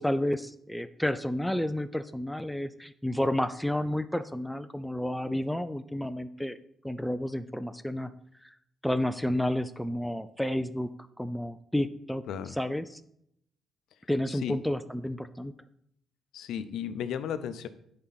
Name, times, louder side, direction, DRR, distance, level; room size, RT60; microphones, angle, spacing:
voice 1, 0.0-6.6 6.8-8.1 8.4-8.5 8.8-10.9 11.2-12.2 12.6-13.0 14.1-15.5, left 1 dB, 5° left, 13 dB, 0.4 m, -31 dB
voice 2, 16.3-17.7, left 8 dB, 80° left, 11 dB, 0.6 m, -34 dB
10.0 x 4.4 x 4.1 m, 0.72 s
cardioid pair, 90°, 0 cm